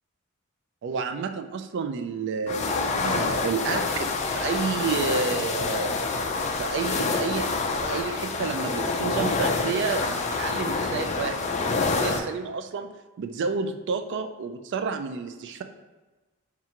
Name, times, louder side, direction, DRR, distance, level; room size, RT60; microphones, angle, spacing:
voice 1, 0.8-6.0 6.6-7.6 7.8-15.6, right 5 dB, 55° right, 8 dB, 0.3 m, -30 dB
sound 1, 2.5-12.2, left 3 dB, 30° left, 0.3 m, -27 dB
5.6 x 2.4 x 2.8 m, 1.2 s
head